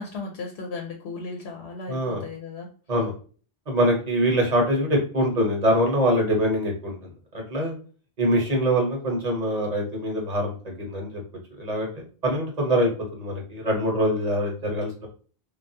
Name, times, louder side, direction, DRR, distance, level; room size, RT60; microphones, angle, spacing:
voice 1, 0.0-2.7, left 3 dB, 80° left, 2 dB, 0.9 m, -35 dB
voice 2, 1.9-2.2 2.9-3.1 3.7-7.0 7.3-7.8 8.2-11.2 11.6-15.1, equal, 40° right, 0 dB, 0.9 m, -24 dB
3.4 x 2.3 x 2.6 m, 0.40 s
omnidirectional pair, 1.1 m